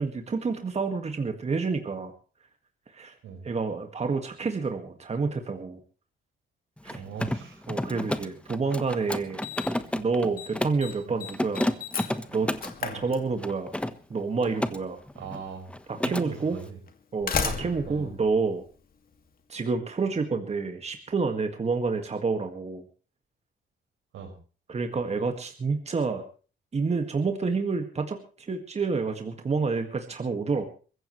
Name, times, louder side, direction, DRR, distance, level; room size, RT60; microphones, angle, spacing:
voice 1, 0.0-2.1 2.9-3.1 3.4-5.8 6.8-7.0 7.7-9.4 10.0-11.7 12.3-12.5 12.9-13.7 14.1-15.0 15.9-16.6 17.1-18.6 19.5-22.8 24.7-26.2 26.7-30.6, right 4 dB, 35° right, 5 dB, 2.0 m, -28 dB
Mechanisms, 6.8-10.9 11.3-12.8 13.4-14.8 15.1-15.4 15.7-16.3, left 1 dB, 5° left, 1.2 m, -31 dB
voice 2, 6.9-7.6 11.1-11.2 12.8-13.0 15.2-15.7 16.0-16.8 17.9-18.2 24.1-24.3, right 6 dB, 80° right, 4 dB, 5.5 m, -40 dB
Slam, 8.6-8.7 9.4-9.9 10.2-10.5 10.8-13.7 14.9-15.0 15.8-15.9 16.9-19.2, left 6 dB, 45° left, 2.4 m, -34 dB
23.0 x 15.0 x 3.2 m, 0.38 s
cardioid pair, 90°, 20 cm